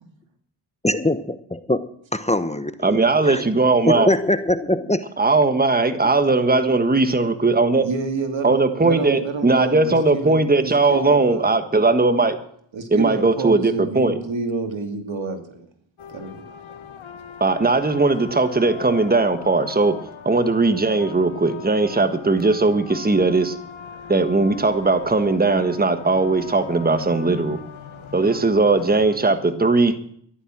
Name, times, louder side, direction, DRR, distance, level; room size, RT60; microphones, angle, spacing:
voice 1, 0.8-1.8 2.1-3.0 3.2-3.4 3.8-5.0, left 1 dB, 15° left, 11 dB, 1.0 m, -22 dB
voice 2, 2.8-4.1 5.2-7.9 8.4-12.4 12.9-14.2 17.4-20.0 20.2-23.5 24.1-27.6 28.1-30.0, right 3 dB, 20° right, 9 dB, 1.5 m, -19 dB
voice 3, 7.8-11.6 12.7-15.6 16.1-16.4, right 4 dB, 75° right, 5 dB, 2.8 m, -29 dB
sound 1, 16.0-29.2, left 6 dB, 85° left, 1.7 m, -39 dB
14.5 x 11.5 x 6.1 m, 0.64 s
cardioid pair, 70°, 46 cm